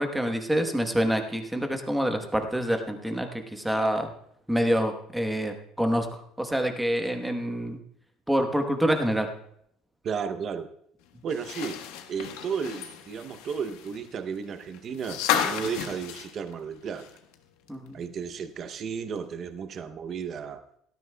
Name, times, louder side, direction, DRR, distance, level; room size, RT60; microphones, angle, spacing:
voice 1, 0.0-4.1 4.5-7.8 8.3-9.3 17.7-18.0, equal, 5° right, 5 dB, 1.1 m, -27 dB
voice 2, 10.0-10.7 11.2-11.8 12.1-17.1 17.9-20.6, right 6 dB, 35° right, 10 dB, 0.7 m, -33 dB
sound 1, 11.3-17.3 17.7-17.8 19.2-19.3, left 9 dB, 85° left, 1.2 m, -33 dB
17.5 x 13.0 x 2.2 m, 0.70 s
cardioid pair, 160°, 0 cm